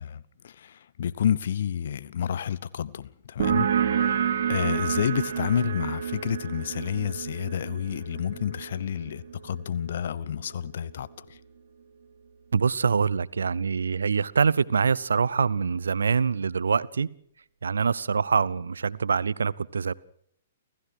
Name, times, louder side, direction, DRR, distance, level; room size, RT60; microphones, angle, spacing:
voice 1, 0.0-4.2 4.5-11.2, left 9 dB, 55° left, 0.9 m, -30 dB
sound 1, 3.4-10.7, right 8 dB, 50° right, 2.7 m, -29 dB
voice 2, 12.5-17.1 17.6-19.9, right 5 dB, 65° right, 0.8 m, -24 dB
29.5 x 15.0 x 6.5 m
figure-of-eight pair, 115°, 0 cm